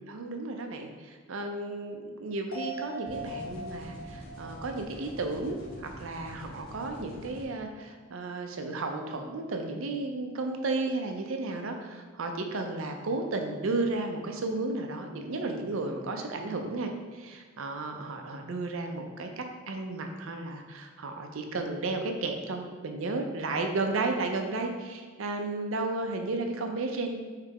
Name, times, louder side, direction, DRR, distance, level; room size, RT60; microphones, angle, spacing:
voice 1, 0.1-27.2, right 2 dB, 65° right, 4 dB, 0.5 m, -33 dB
sound 1, 2.5-6.2 6.6-6.7, right 2 dB, 85° left, 1.0 m, -42 dB
sound 2, 3.1-7.4, equal, 45° left, 0.8 m, -46 dB
4.7 x 3.2 x 3.5 m, 1.4 s
head